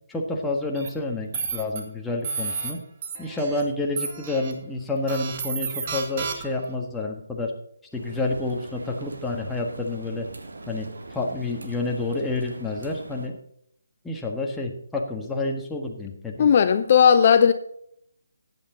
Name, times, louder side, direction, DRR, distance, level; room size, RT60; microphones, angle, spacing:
voice 1, 0.1-2.8 3.2-7.5 7.9-10.3 10.7-10.9 11.1-13.3 14.0-16.5, left 2 dB, 5° left, 1.5 m, -29 dB
sound 1, 0.7-0.9 1.3-1.8 2.2-2.7 3.0-3.6 4.0-4.5 5.1-6.6, right 5 dB, 35° right, 1.9 m, -31 dB
sound 2, 7.9-13.3, right 2 dB, 70° right, 1.7 m, -42 dB
voice 2, 16.4-17.5, left 7 dB, 40° left, 0.6 m, -16 dB
14.5 x 9.3 x 3.9 m
figure-of-eight pair, 150°, 0 cm